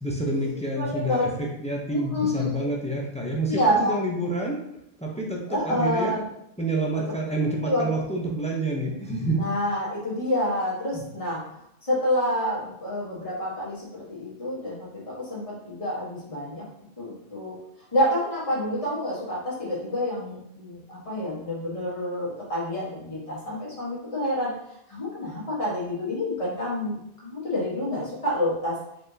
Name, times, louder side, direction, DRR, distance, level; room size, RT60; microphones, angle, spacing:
voice 1, 0.0-4.6 5.0-6.2 6.6-9.4 10.9-11.0, right 1 dB, 10° left, -2 dB, 0.5 m, -28 dB
voice 2, 0.8-1.3 1.9-2.7 3.5-4.0 5.5-6.2 7.2-7.3 7.6-7.9 9.3-11.4 11.8-16.6 17.0-17.6 17.9-24.5 24.9-28.8, left 1 dB, 35° left, -7 dB, 1.4 m, -28 dB
4.2 x 3.2 x 2.7 m, 0.79 s
omnidirectional pair, 1.0 m